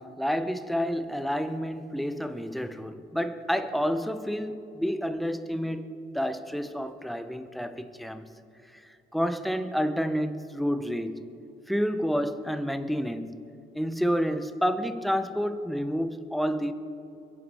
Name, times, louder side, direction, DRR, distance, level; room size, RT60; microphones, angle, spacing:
voice 1, 0.0-5.8 6.1-8.3 8.7-11.2 11.7-13.4 13.7-16.7, equal, ahead, 10 dB, 0.8 m, -29 dB
23.0 x 11.0 x 3.5 m, 2.8 s
cardioid pair, 90°, 20 cm